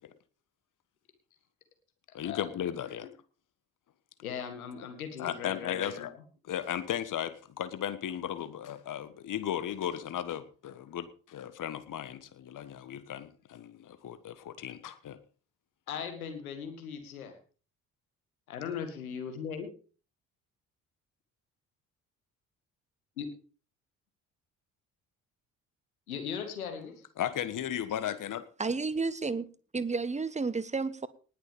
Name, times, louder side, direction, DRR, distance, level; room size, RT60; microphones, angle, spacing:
voice 1, 2.1-3.1 5.2-6.1 6.4-15.2 27.2-28.4, left 10 dB, 45° left, 1.5 m, -36 dB
voice 2, 4.2-6.2 15.9-17.4 18.5-19.7 23.2-23.3 26.1-27.0, left 7 dB, 85° left, 2.1 m, -38 dB
voice 3, 28.6-31.1, right 4 dB, 15° right, 1.2 m, -32 dB
19.5 x 6.8 x 5.2 m
figure-of-eight pair, 45°, 42 cm